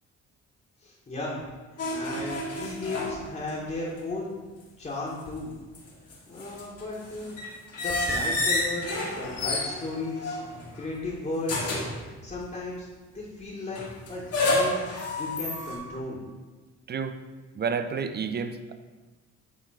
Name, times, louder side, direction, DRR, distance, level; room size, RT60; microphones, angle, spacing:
voice 1, 0.8-1.4 1.7-4.3 4.8-5.5 6.3-7.4 7.8-10.4 10.8-11.8 12.2-12.9 13.1-14.9 15.2-16.2, left 2 dB, 30° left, -7 dB, 1.8 m, -35 dB
sound 1, 1.8-3.7 4.0-4.1 5.5-10.9 11.4-12.0 13.8-15.8, left 2 dB, 55° left, 2.2 m, -30 dB
voice 2, 16.9-17.2 17.6-18.7, right 6 dB, 35° right, 9 dB, 0.6 m, -30 dB
8.8 x 3.6 x 5.0 m, 1.3 s
cardioid pair, 90°, 30 cm